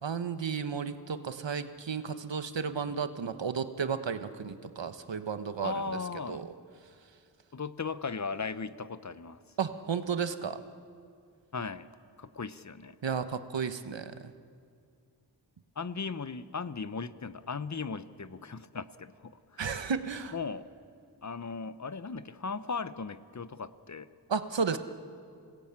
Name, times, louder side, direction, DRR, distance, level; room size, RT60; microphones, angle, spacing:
voice 1, 0.0-5.7 6.3-6.5 9.6-10.6 13.0-14.3 19.6-20.3 24.3-24.8, right 6 dB, 80° right, 10 dB, 1.2 m, -33 dB
voice 2, 5.6-6.4 7.5-9.4 11.5-11.9 12.2-13.0 15.8-19.6 20.3-20.7 21.2-24.1 24.7-24.8, left 4 dB, 40° left, 14 dB, 0.8 m, -37 dB
28.0 x 18.5 x 8.8 m, 2.3 s
wide cardioid pair, 80°, 43 cm